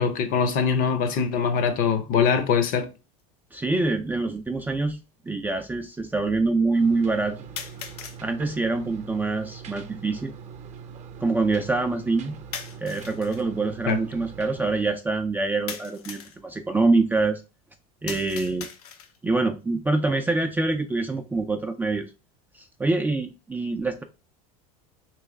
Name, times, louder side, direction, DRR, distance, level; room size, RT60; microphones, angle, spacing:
voice 1, 0.0-2.9 13.9-14.0, left 6 dB, 50° left, 0.7 m, -22 dB
sound 1, 3.2-3.3 4.3-4.4 7.6-8.2 12.5-13.4 15.7-16.4 18.1-19.2, left 7 dB, 85° left, 0.7 m, -38 dB
voice 2, 3.5-5.0 5.3-7.4 8.2-10.3 11.2-12.4 12.8-17.4 18.0-18.7 19.2-22.1 22.6-24.0, right 3 dB, 10° right, 0.3 m, -25 dB
sound 2, 6.7-14.8, right 6 dB, 35° right, 0.7 m, -42 dB
3.1 x 3.0 x 3.6 m
supercardioid pair, 105°, 19 cm